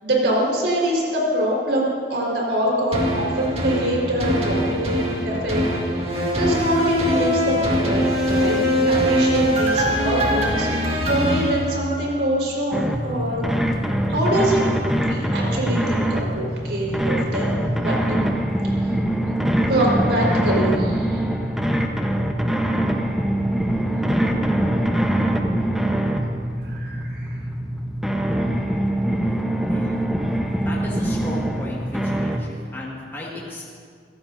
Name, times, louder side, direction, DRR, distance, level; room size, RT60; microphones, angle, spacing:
voice 1, 0.0-5.6 5.9-6.0 6.3-10.7 11.1-13.4 14.1-14.6 14.9-18.2 18.8-18.9 19.7-21.3 26.6-27.4, right 1 dB, 80° right, -3 dB, 4.7 m, -24 dB
sound 1, 2.9-12.3 12.8-12.9, equal, 35° right, 2.2 m, -22 dB
sound 2, 12.7-32.4, right 1 dB, ahead, 1.0 m, -23 dB
voice 2, 30.6-33.6, left 1 dB, 15° left, -5 dB, 2.0 m, -35 dB
24.5 x 16.0 x 2.7 m, 2.1 s
head